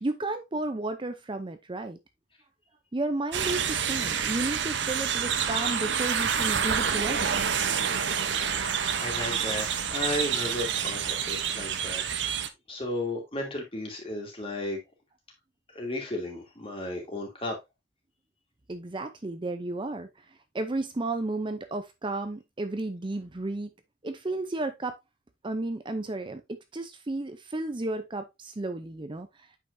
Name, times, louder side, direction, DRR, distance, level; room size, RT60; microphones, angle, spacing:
voice 1, 0.0-2.0 2.9-7.5 18.7-20.3 20.5-23.7 24.0-25.0 25.4-29.5, right 2 dB, 25° right, 0.6 m, -33 dB
sound 1, 3.3-12.5, right 7 dB, 70° right, 0.8 m, -28 dB
voice 2, 8.4-12.2 12.7-14.8 15.7-17.6, left 1 dB, 30° left, 2.9 m, -34 dB
8.7 x 5.7 x 2.6 m
head